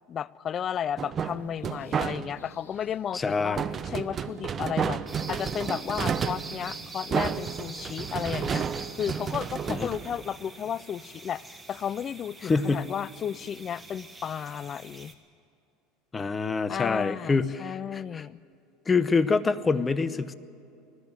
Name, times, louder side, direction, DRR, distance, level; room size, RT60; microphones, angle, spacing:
voice 1, 0.1-5.0 5.3-8.7 9.0-15.1 16.7-18.4, left 9 dB, 40° left, 22 dB, 0.4 m, -33 dB
sound 1, 1.0-2.5 3.6-10.7, right 7 dB, 35° right, 0.7 m, -31 dB
sound 2, 1.2-8.3, left 4 dB, 85° left, 1.6 m, -56 dB
voice 2, 3.1-3.7 9.7-9.9 12.4-12.9 16.1-18.2 18.9-20.3, left 4 dB, 25° left, 15 dB, 0.9 m, -26 dB
sound 3, 5.1-15.1, right 3 dB, 15° right, 1.9 m, -44 dB
19.5 x 14.5 x 9.5 m, 2.7 s
hypercardioid pair, 80°, 0 cm